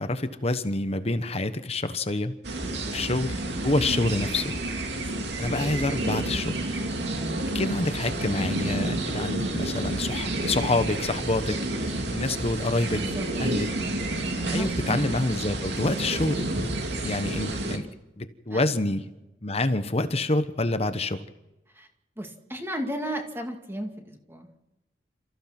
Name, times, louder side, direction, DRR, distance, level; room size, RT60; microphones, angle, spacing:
voice 1, 0.0-2.3 2.9-4.5 5.4-6.6 7.5-13.0 13.4-13.7 14.5-16.5 16.9-17.9 18.2-19.1 19.4-21.2, left 2 dB, 35° left, 10 dB, 1.2 m, -27 dB
sound 1, 2.4-17.8, right 2 dB, 75° right, 2.7 m, -30 dB
voice 2, 12.9-13.3 14.4-14.7 18.5-18.6 21.8-21.9 22.2-24.5, equal, 15° right, 3 dB, 2.4 m, -34 dB
29.5 x 15.0 x 6.0 m, 0.97 s
head